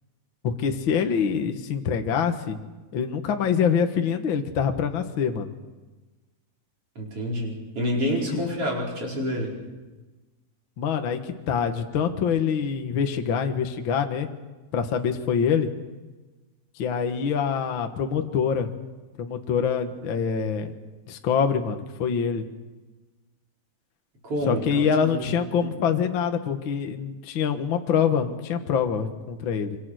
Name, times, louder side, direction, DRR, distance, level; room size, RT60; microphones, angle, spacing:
voice 1, 0.4-2.6 2.9-5.5 8.1-8.4 10.8-14.3 14.7-15.7 16.8-18.7 19.2-20.7 21.1-22.4 24.4-29.8, left 7 dB, 65° left, 5 dB, 1.2 m, -25 dB
voice 2, 7.0-9.6 24.2-25.3 25.6-25.7, equal, 35° right, -2 dB, 5.4 m, -28 dB
25.5 x 25.0 x 6.5 m, 1.2 s
omnidirectional pair, 4.5 m